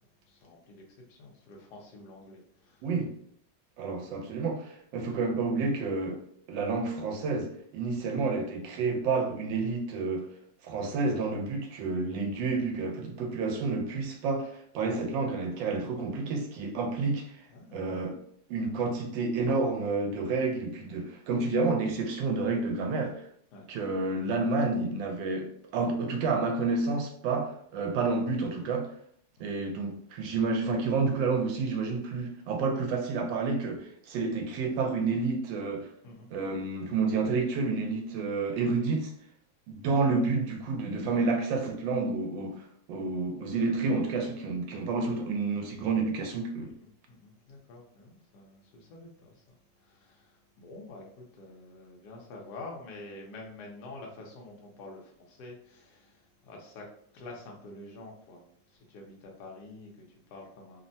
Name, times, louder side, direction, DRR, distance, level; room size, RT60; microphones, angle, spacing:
voice 1, 0.3-2.9 17.5-18.1 23.5-23.7 29.4-29.5 36.0-36.3 46.6-56.9 57.1-60.8, left 2 dB, 70° left, 1.2 m, -48 dB
voice 2, 2.8-3.1 3.8-6.2 6.5-10.3 10.6-17.4 17.7-18.2 18.5-23.3 23.7-28.9 29.4-35.9 36.3-39.1 39.7-46.7, right 3 dB, 90° right, 1.3 m, -30 dB
3.3 x 2.1 x 2.6 m
omnidirectional pair, 2.0 m